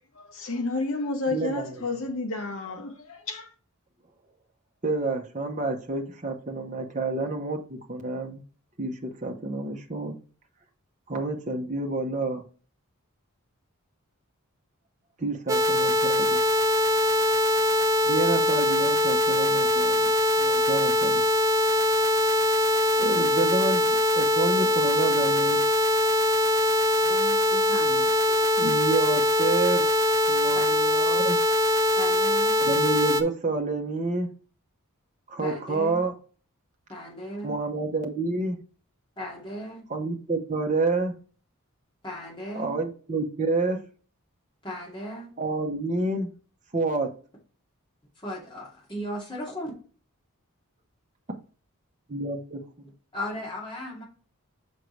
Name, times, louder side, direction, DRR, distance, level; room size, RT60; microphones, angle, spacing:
voice 1, 0.3-3.5, left 3 dB, 60° left, 1.1 m, -31 dB
voice 2, 1.3-1.8 4.8-8.4 8.8-10.1 11.1-12.4 15.2-16.4 18.0-20.1 20.4-21.2 22.9-25.6 28.6-29.9 30.3-31.4 32.6-34.3 35.3-36.1 37.4-38.6 39.9-41.1 42.5-43.8 45.4-46.3 46.7-47.1 52.1-52.6, right 3 dB, 35° right, 0.9 m, -29 dB
sound 1, 15.5-33.2, left 1 dB, 15° right, 0.4 m, -22 dB
voice 3, 27.0-28.1 30.5-30.8 31.9-32.6 35.4-36.0 36.9-37.6 39.2-39.9 42.0-42.8 44.6-45.3 48.2-49.7 53.1-54.0, equal, 20° left, 2.4 m, -36 dB
6.4 x 5.2 x 3.2 m
head